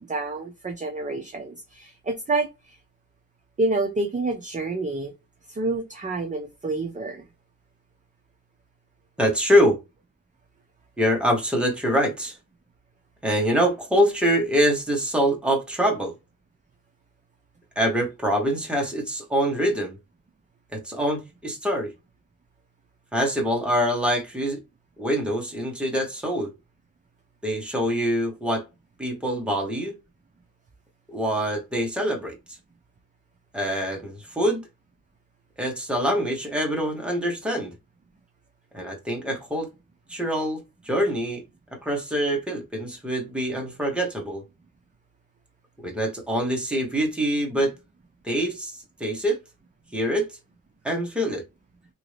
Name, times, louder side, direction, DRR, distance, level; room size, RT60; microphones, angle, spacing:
voice 1, 0.1-2.5 3.6-5.1 5.5-7.2, right 2 dB, 25° right, 0.5 m, -28 dB
voice 2, 9.2-9.8 11.0-12.4 13.2-16.1 17.8-20.0 20.7-21.9 23.1-24.6 25.0-26.5 27.4-28.6 29.0-30.0 31.1-32.6 33.5-34.6 35.6-37.7 38.7-39.7 40.1-41.4 41.7-44.4 45.8-47.7 48.2-49.4 49.9-50.4 50.8-51.4, equal, 5° right, 0.9 m, -25 dB
3.0 x 2.6 x 3.1 m
wide cardioid pair, 160°, 33 cm